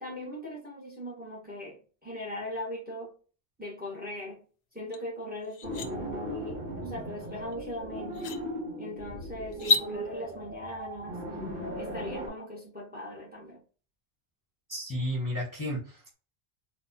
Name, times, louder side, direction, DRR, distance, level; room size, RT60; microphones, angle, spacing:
voice 1, 0.0-3.1 3.6-4.4 4.7-8.4 8.8-11.2 11.8-13.6, left 1 dB, 10° right, -2 dB, 1.1 m, -39 dB
sound 1, 4.9-5.0 5.4-5.9 7.5-7.6 8.1-8.4 9.5-9.9, left 4 dB, 80° left, 0.8 m, -28 dB
sound 2, 5.6-12.3, equal, 60° right, 1.2 m, -38 dB
voice 2, 14.7-16.1, equal, 20° left, -5 dB, 0.9 m, -33 dB
4.0 x 2.4 x 2.7 m, 0.38 s
omnidirectional pair, 1.0 m